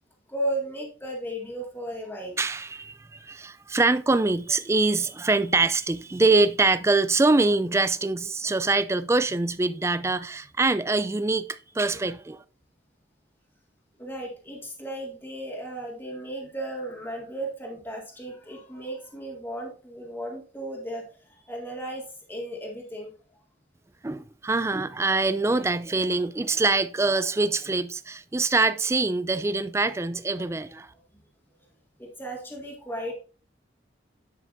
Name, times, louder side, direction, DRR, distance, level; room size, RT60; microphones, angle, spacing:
voice 1, 0.3-2.4 14.0-23.1 32.0-33.1, right 1 dB, 10° left, 1.8 m, -35 dB
voice 2, 2.4-12.4 24.0-30.9, right 3 dB, 15° right, 0.4 m, -24 dB
10.5 x 5.8 x 2.6 m
head